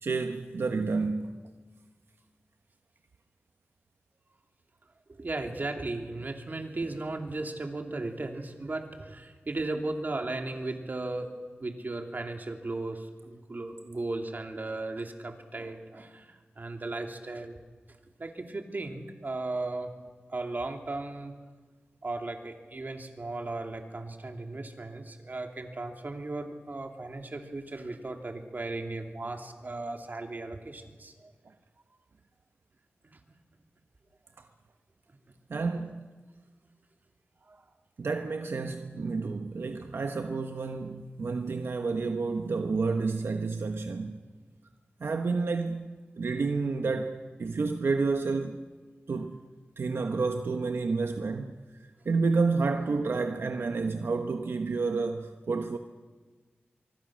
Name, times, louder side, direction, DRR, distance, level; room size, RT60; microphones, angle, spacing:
voice 1, 0.0-1.4 34.4-34.5 35.5-36.1 38.0-44.2 45.0-48.6 49.1-49.4 49.8-51.6 52.0-55.8, right 4 dB, 80° right, 1.2 m, -30 dB
voice 2, 5.1-11.3 11.6-17.6 18.2-19.9 20.3-21.3 22.0-31.3 33.0-33.2 37.5-37.6, right 2 dB, 50° right, 3.0 m, -36 dB
25.0 x 24.0 x 6.4 m
wide cardioid pair, 70°, 4 cm